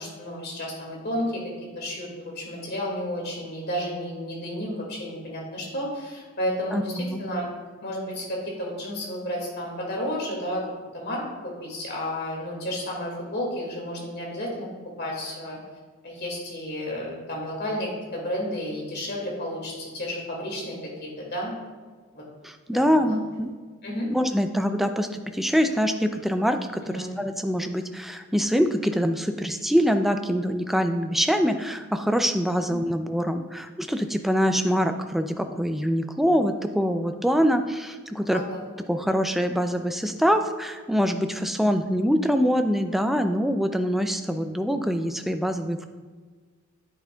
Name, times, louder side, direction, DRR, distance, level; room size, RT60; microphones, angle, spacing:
voice 1, 0.0-1.4 1.8-7.4 7.8-10.6 10.9-14.7 15.0-15.6 16.0-21.5 22.1-22.2 22.7-23.2 23.8-24.1 26.8-27.1 32.6-32.8 38.3-38.6, equal, 50° left, -2 dB, 2.1 m, -32 dB
voice 2, 6.7-7.2 22.4-23.5 24.1-38.4 38.9-45.9, equal, ahead, 7 dB, 0.4 m, -24 dB
9.9 x 8.7 x 2.3 m, 1.5 s
head